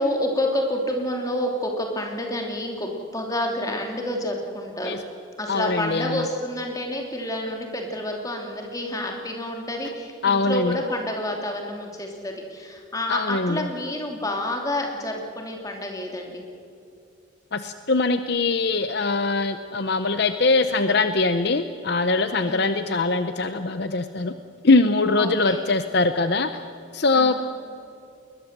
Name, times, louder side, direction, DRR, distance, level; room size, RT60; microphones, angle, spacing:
voice 1, 0.0-5.0 5.4-16.4 22.4-22.7 25.2-25.7 27.1-27.3, left 1 dB, 15° left, 2 dB, 2.9 m, -29 dB
voice 2, 5.5-6.2 10.2-10.8 13.1-13.7 17.5-24.3 24.6-26.5 26.9-27.3, left 3 dB, 55° left, 10 dB, 0.8 m, -22 dB
21.0 x 21.0 x 7.4 m, 2.6 s
head